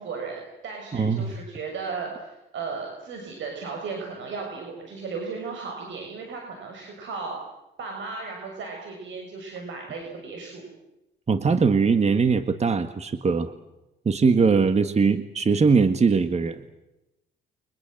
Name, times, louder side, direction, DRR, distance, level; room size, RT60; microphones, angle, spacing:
voice 1, 0.0-7.4 7.8-10.6, right 4 dB, 70° right, 1 dB, 6.5 m, -35 dB
voice 2, 0.9-1.3 11.3-13.5 14.0-16.6, right 5 dB, 35° right, 10 dB, 1.6 m, -21 dB
29.5 x 24.0 x 7.8 m, 0.94 s
cardioid pair, 90°, 20 cm